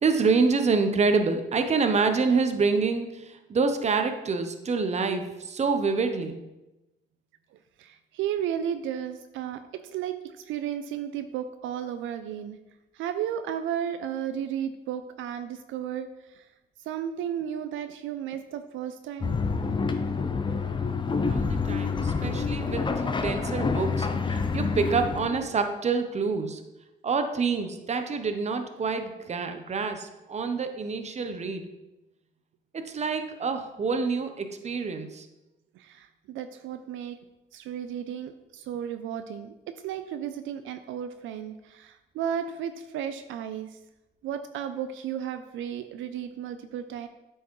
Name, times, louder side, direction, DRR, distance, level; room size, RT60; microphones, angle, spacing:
voice 1, 0.0-6.4 21.3-26.6 27.0-31.7 32.7-35.3, right 4 dB, 35° right, 7 dB, 0.7 m, -27 dB
voice 2, 7.8-12.6 12.9-16.5 16.8-19.4 21.7-21.8 35.7-37.2 37.5-43.8 44.2-47.1, right 9 dB, 80° right, 9 dB, 0.4 m, -34 dB
sound 1, 19.2-25.5, left 4 dB, 25° left, 0.5 m, -28 dB
8.2 x 4.5 x 3.1 m, 1.0 s
cardioid pair, 90°, 20 cm